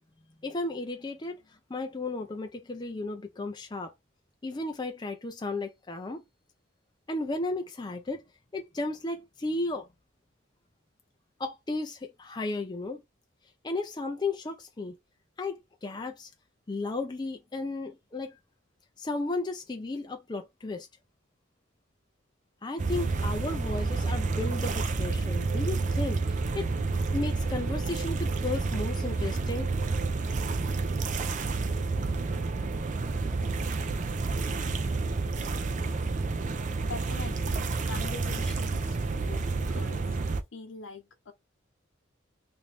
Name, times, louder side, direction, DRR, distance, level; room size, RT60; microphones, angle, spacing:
voice 1, 0.4-1.4 1.7-3.9 4.4-6.2 7.1-8.2 8.5-9.9 11.4-13.0 13.6-15.0 15.4-16.3 16.7-18.4 19.0-20.9 22.6-26.7 27.1-29.7, left 2 dB, 20° left, 0.4 m, -34 dB
sound 1, 22.8-40.4, right 3 dB, 35° right, 0.4 m, -29 dB
voice 2, 36.9-39.4 39.7-40.2 40.5-41.3, left 4 dB, 70° left, 0.8 m, -43 dB
3.0 x 2.6 x 3.2 m
head